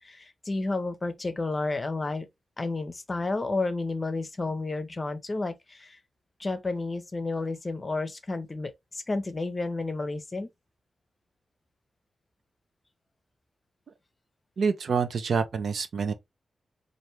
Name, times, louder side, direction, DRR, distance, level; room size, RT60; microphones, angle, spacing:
voice 1, 0.0-2.3 2.6-6.0 6.4-10.5, left 3 dB, 30° left, 0.7 m, -31 dB
voice 2, 14.6-16.1, right 5 dB, 70° right, 0.7 m, -27 dB
4.3 x 2.6 x 3.2 m
wide cardioid pair, 135°, 0 cm